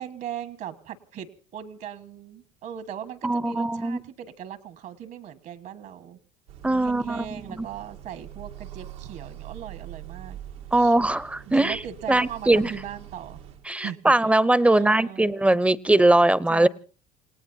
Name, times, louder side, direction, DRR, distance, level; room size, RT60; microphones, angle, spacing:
voice 1, 0.0-6.2 6.7-10.4 10.8-11.0 11.5-13.4 13.7-14.3 14.7-15.3 16.5-16.7, right 9 dB, 60° right, 10 dB, 1.7 m, -39 dB
voice 2, 3.2-4.0 6.6-7.7 10.7-11.8 12.1-12.7 13.7-16.7, right 2 dB, 5° right, 18 dB, 0.7 m, -21 dB
sound 1, 6.5-13.6, right 11 dB, 90° right, 2.2 m, -43 dB
28.5 x 18.0 x 2.8 m, 0.37 s
supercardioid pair, 105°, 17 cm